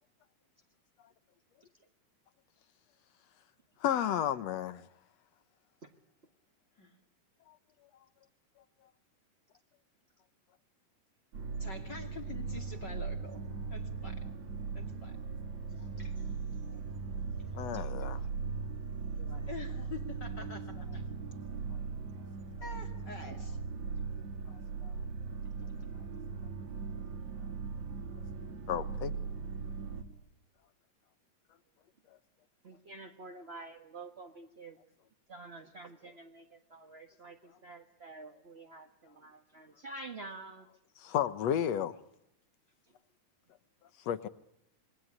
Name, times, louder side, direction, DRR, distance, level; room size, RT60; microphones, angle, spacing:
voice 1, 3.8-4.8 17.5-18.2 28.7-29.1 41.0-41.9 44.1-44.3, left 10 dB, 65° left, 14 dB, 2.2 m, -32 dB
sound 1, 11.3-30.0, right 5 dB, 70° right, 3.6 m, -39 dB
voice 2, 11.6-13.4 13.7-14.3 14.7-15.2 19.5-21.1 22.6-23.6, left 4 dB, 35° left, 4 dB, 3.1 m, -46 dB
voice 3, 15.7-16.6 17.5-18.1 19.2-19.6 23.3-23.4 25.6-25.7 32.6-34.8 35.3-40.7 42.9-43.0, right 2 dB, 30° right, 5 dB, 1.2 m, -49 dB
27.0 x 22.5 x 9.8 m, 0.78 s
omnidirectional pair, 3.4 m